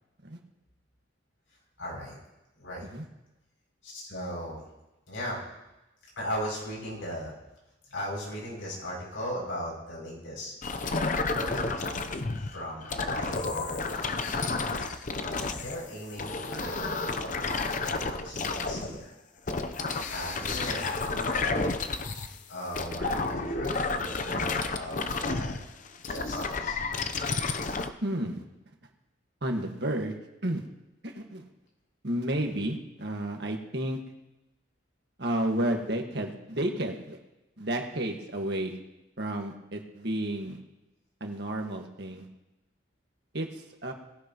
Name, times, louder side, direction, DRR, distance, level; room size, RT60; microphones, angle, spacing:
voice 1, 1.8-2.2 2.6-2.9 3.8-4.6 5.1-5.4 6.1-7.3 7.9-10.5 11.3-12.1 12.5-14.4 15.1-19.1 20.1-21.7 22.5-25.6 26.1-26.8, equal, 90° left, -3 dB, 6.8 m, -38 dB
sound 1, 10.6-15.8 16.1-19.0 19.5-22.4 22.7-27.9, left 3 dB, 40° left, 0.7 m, -31 dB
voice 2, 28.0-28.4 29.4-30.2 30.4-30.6 31.0-31.4 32.0-34.0 35.2-37.2 37.6-38.8 39.2-40.6 41.2-42.3 43.3-43.5 43.8-43.9, right 1 dB, 60° right, 2 dB, 1.7 m, -31 dB
18.0 x 16.0 x 3.0 m, 0.97 s
head